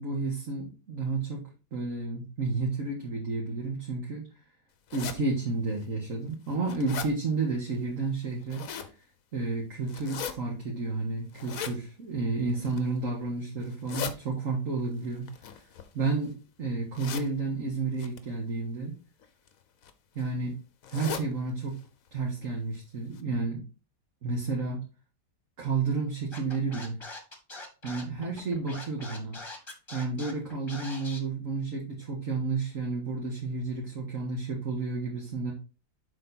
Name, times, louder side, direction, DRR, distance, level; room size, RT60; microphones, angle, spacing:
voice 1, 0.0-1.4 1.7-4.3 4.9-8.7 9.3-15.6 15.9-18.9 20.2-20.6 20.9-21.8 22.1-23.6 24.2-24.8 25.6-27.0 27.8-29.4 29.9-35.5, right 3 dB, 50° right, -2 dB, 1.9 m, -31 dB
sound 1, 4.9-5.2 5.8-5.9 6.3-7.1 8.2-8.9 9.9-10.3 11.3-11.8 12.5-12.9 13.6-14.1 15.3-16.3 16.9-17.3 18.0-18.2 19.2-19.5 19.8-19.9 20.2-20.3 20.8-21.3 21.7-21.8 22.1-22.2 22.7-22.8 23.1-23.2, left 8 dB, 60° left, 1.2 m, -38 dB
Scratching (performance technique), 26.3-31.2, left 2 dB, 15° left, 1.4 m, -42 dB
7.2 x 4.7 x 4.2 m, 0.32 s
omnidirectional pair, 1.8 m